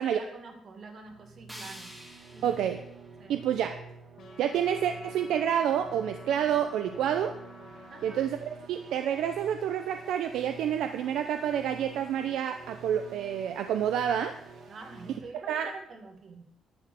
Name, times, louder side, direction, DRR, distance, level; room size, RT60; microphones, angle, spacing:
voice 1, 0.0-1.9 2.3-2.7 3.2-3.4 7.9-8.2 14.7-16.5, right 3 dB, 45° right, 4 dB, 2.1 m, -46 dB
sound 1, 1.0-15.2, right 4 dB, 60° right, 1.8 m, -49 dB
sound 2, 1.5-4.5, equal, 5° right, 1.8 m, -49 dB
voice 2, 2.4-2.8 3.3-3.8 4.4-7.3 8.0-14.3 15.5-15.7, right 9 dB, 85° right, 7 dB, 0.6 m, -28 dB
sound 3, 4.2-8.3, left 4 dB, 65° left, 2.5 m, -51 dB
11.5 x 5.2 x 8.5 m, 0.79 s
cardioid pair, 140°, 0 cm